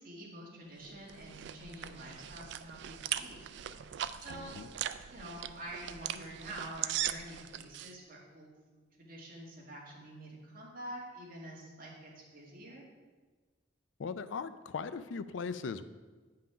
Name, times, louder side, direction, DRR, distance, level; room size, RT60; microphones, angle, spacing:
voice 1, 0.0-3.4 4.2-4.6 5.1-12.8, right 1 dB, 50° right, -3 dB, 2.1 m, -47 dB
sound 1, 0.8-7.9, right 11 dB, 65° right, 0.3 m, -40 dB
voice 2, 4.3-4.7 14.0-15.9, left 5 dB, 75° left, 13 dB, 0.4 m, -39 dB
8.6 x 5.8 x 5.0 m, 1.3 s
head